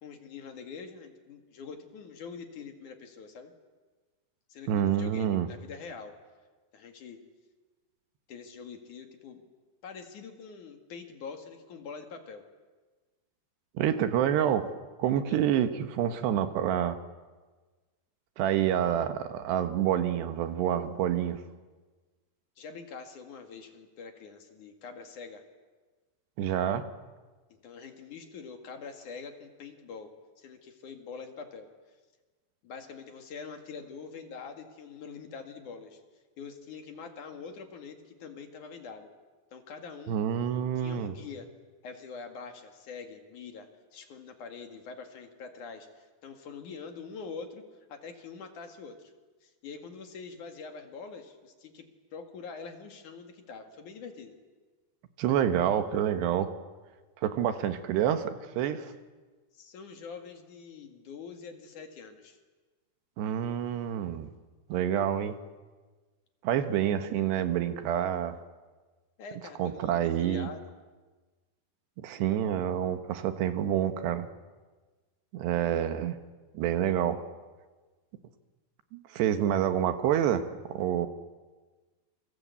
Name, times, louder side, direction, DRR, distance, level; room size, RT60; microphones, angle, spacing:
voice 1, 0.0-3.5 4.5-6.1 6.7-7.2 8.3-9.4 9.8-12.4 15.3-15.4 22.6-25.4 27.6-30.1 30.4-31.7 32.6-36.0 36.4-39.1 39.5-40.2 40.8-41.5 41.8-47.6 47.9-49.1 49.4-51.8 52.1-54.4 59.5-62.4 69.2-70.7, left 5 dB, 50° left, 5 dB, 3.1 m, -44 dB
voice 2, 4.7-5.5 13.8-14.7 15.0-17.0 18.4-21.4 26.4-26.9 40.1-41.1 55.2-56.5 57.2-58.9 63.2-64.3 64.7-65.3 66.4-68.4 69.6-70.5 72.0-74.3 75.3-76.2 76.5-77.2 78.9-80.4 80.7-81.1, right 10 dB, 75° right, 9 dB, 3.4 m, -27 dB
28.5 x 24.0 x 8.4 m, 1.3 s
omnidirectional pair, 5.0 m